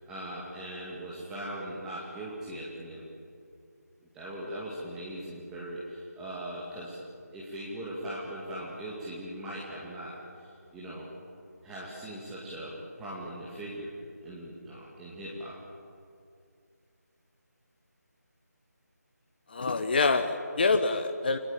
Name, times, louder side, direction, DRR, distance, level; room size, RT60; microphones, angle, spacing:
voice 1, 0.0-3.0 4.1-7.0 7.3-11.1 11.6-13.9 14.2-15.5, right 1 dB, 5° right, -8 dB, 2.3 m, -40 dB
voice 2, 19.5-21.4, left 3 dB, 35° left, 7 dB, 1.1 m, -26 dB
30.0 x 20.0 x 8.7 m, 2.4 s
figure-of-eight pair, 160°, 9 cm